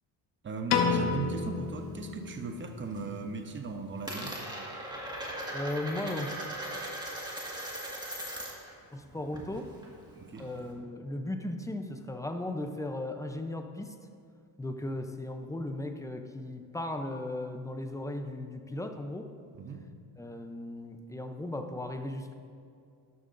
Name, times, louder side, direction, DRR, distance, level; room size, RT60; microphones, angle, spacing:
voice 1, 0.4-4.4 10.2-10.5 19.5-19.9, right 4 dB, 25° right, 6 dB, 0.9 m, -37 dB
Piano, 0.7-3.0, left 5 dB, 65° left, 1.1 m, -30 dB
Coin (dropping), 1.2-2.4 2.7-3.2 3.4-8.7 9.0-10.7, right 1 dB, 10° right, 1.8 m, -39 dB
voice 2, 5.5-6.4 8.9-9.7 10.4-14.0 14.6-19.3 20.2-22.3, left 1 dB, 5° left, 6 dB, 0.6 m, -36 dB
12.0 x 11.5 x 2.6 m, 2.4 s
cardioid pair, 125°, 46 cm